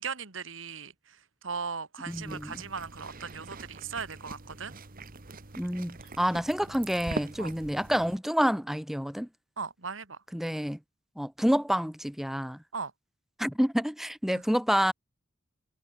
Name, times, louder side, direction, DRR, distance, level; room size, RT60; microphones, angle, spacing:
voice 1, 0.0-4.7 7.4-7.5 9.6-10.2 12.7-12.9 14.3-14.4, right 5 dB, 75° right, 2.0 m, -38 dB
voice 2, 2.1-2.5 5.6-9.3 10.3-10.8 11.2-12.6 13.4-14.9, equal, ahead, 1.1 m, -28 dB
sound 1, 2.1-8.2, right 2 dB, 45° right, 1.5 m, -43 dB
head